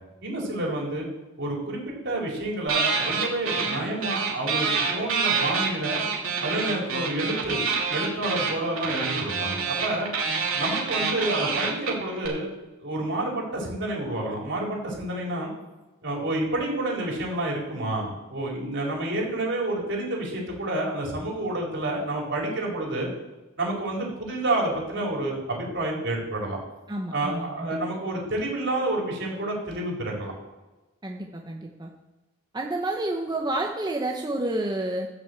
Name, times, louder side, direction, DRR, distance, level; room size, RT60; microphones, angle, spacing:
voice 1, 0.2-1.1 1.4-6.0 6.4-7.6 7.9-10.1 10.5-12.5 12.8-15.5 16.0-23.1 23.6-26.6 27.1-30.3, right 1 dB, 65° right, -2 dB, 4.1 m, -29 dB
sound 1, 2.7-12.3, right 5 dB, 90° right, 3.0 m, -27 dB
voice 2, 26.9-28.0 31.0-31.9 32.5-35.1, right 1 dB, 20° right, 1 dB, 1.0 m, -30 dB
13.0 x 6.3 x 7.9 m, 1.1 s
head